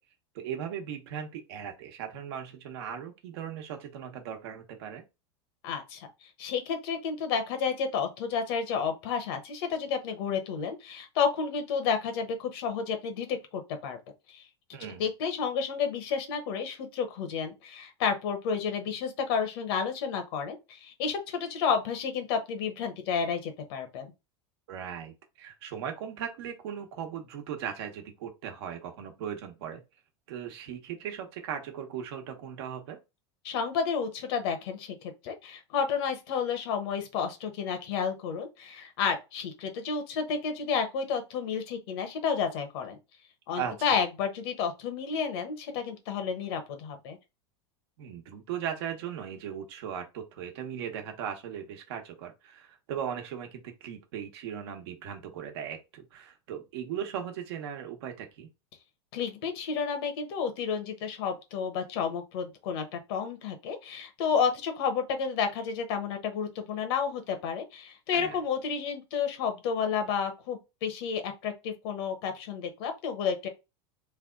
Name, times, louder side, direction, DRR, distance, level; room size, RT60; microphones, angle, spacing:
voice 1, 0.3-5.0 14.7-15.0 24.7-29.8 30.3-33.0 43.6-43.7 48.0-58.5 68.1-68.4, right 8 dB, 70° right, 1.0 m, -38 dB
voice 2, 5.6-6.1 6.4-14.0 14.3-14.5 15.0-24.1 33.4-43.0 43.5-47.2 59.1-73.5, left 6 dB, 65° left, 1.1 m, -31 dB
3.4 x 2.2 x 3.7 m
supercardioid pair, 140°, 14 cm